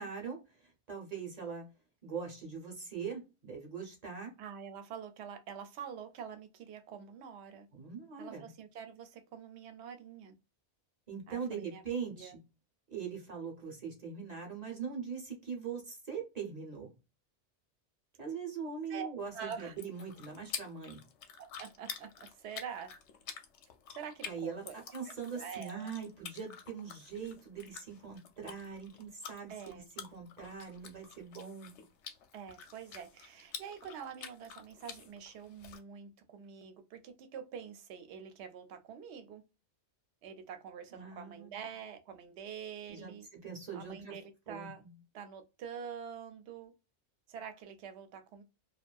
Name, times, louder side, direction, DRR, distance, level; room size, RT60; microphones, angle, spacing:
voice 1, 0.0-1.7 2.0-4.3 7.7-8.5 11.1-12.4 12.9-16.9 18.2-21.0 24.2-24.6 24.9-31.8 40.9-41.6 42.9-44.2 44.5-44.7, right 6 dB, 40° right, 0.8 m, -42 dB
voice 2, 4.4-7.7 8.2-10.3 11.3-11.8 12.2-12.3 18.9-19.1 19.3-19.7 21.4-22.9 23.9-24.8 25.0-25.9 29.5-29.9 32.3-39.4 40.2-43.3 43.7-44.8 45.1-46.7 47.3-48.4, right 7 dB, 70° right, 0.8 m, -46 dB
sound 1, 19.2-35.8, left 7 dB, 80° left, 0.9 m, -49 dB
2.6 x 2.3 x 2.2 m
omnidirectional pair, 1.2 m